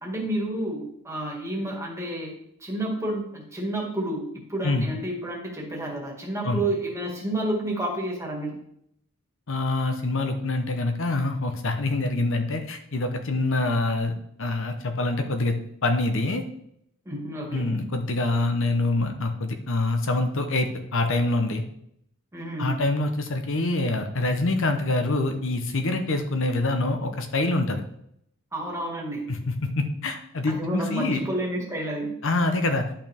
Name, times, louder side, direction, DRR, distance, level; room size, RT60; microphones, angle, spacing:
voice 1, 0.0-2.3 2.6-8.6 17.1-17.8 22.3-22.7 28.5-29.3 30.5-32.1, right 1 dB, 15° right, -1 dB, 1.9 m, -30 dB
voice 2, 9.5-14.1 14.4-15.6 15.8-16.4 17.5-21.6 22.6-27.8 29.3-31.2 32.2-32.8, left 2 dB, 60° left, 6 dB, 0.9 m, -25 dB
11.0 x 5.8 x 3.5 m, 0.73 s
head